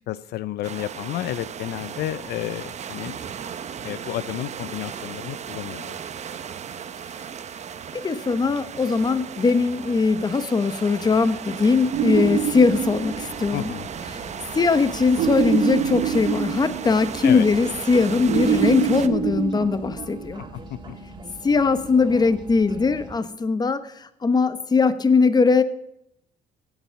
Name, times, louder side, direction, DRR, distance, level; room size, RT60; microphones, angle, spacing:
voice 1, 0.1-3.2 3.8-6.0 13.5-13.9 17.2-17.5 20.7-20.9, left 13 dB, 70° left, 16 dB, 0.6 m, -31 dB
sound 1, 0.6-19.1, right 8 dB, 40° right, 0.9 m, -36 dB
voice 2, 7.9-13.7 14.1-14.2 14.5-20.4 21.4-25.6, left 4 dB, 25° left, 12 dB, 1.0 m, -20 dB
sound 2, 11.9-13.6 15.2-17.3 18.3-20.4, right 8 dB, 75° right, 1.2 m, -25 dB
sound 3, 12.1-23.1, right 2 dB, 25° right, 2.2 m, -41 dB
17.0 x 7.3 x 5.8 m, 0.77 s
cardioid pair, 110°, 17 cm